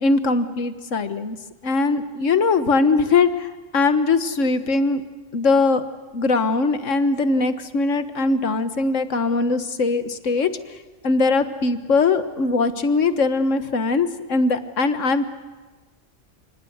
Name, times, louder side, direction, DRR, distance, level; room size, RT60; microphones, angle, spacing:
voice 1, 0.0-1.4 1.6-5.0 5.3-5.8 6.1-10.5 11.0-15.2, left 3 dB, 90° left, 10 dB, 1.8 m, -21 dB
27.0 x 26.0 x 8.0 m, 1.3 s
omnidirectional pair, 1.3 m